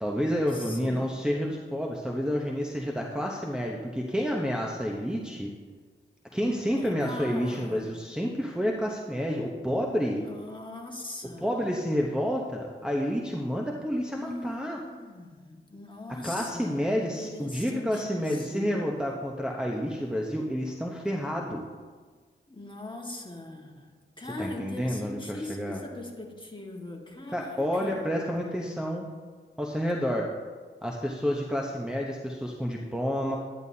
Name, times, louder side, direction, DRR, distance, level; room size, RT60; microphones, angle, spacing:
voice 1, 0.0-5.5 6.3-10.2 11.4-14.8 16.2-21.6 24.4-25.8 27.3-29.0 29.6-30.3 30.8-33.4, equal, 5° right, -2 dB, 0.9 m, -29 dB
voice 2, 0.5-1.1 6.7-8.0 10.1-11.5 14.2-19.0 22.5-28.1, left 2 dB, 25° left, 0 dB, 1.8 m, -41 dB
11.0 x 10.0 x 2.8 m, 1.5 s
cardioid pair, 45°, 21 cm